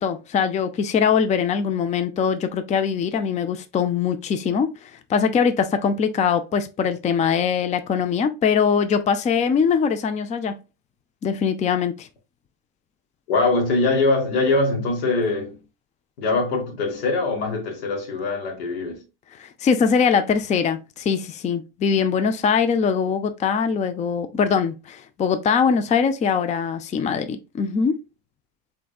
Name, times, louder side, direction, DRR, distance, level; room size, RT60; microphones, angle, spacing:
voice 1, 0.0-10.6 11.2-12.1 19.4-28.0, left 6 dB, 25° left, 0.4 m, -22 dB
voice 2, 13.3-15.6 16.2-19.0, left 3 dB, 90° left, 1.5 m, -22 dB
3.8 x 3.5 x 2.3 m
supercardioid pair, 110°, 30 cm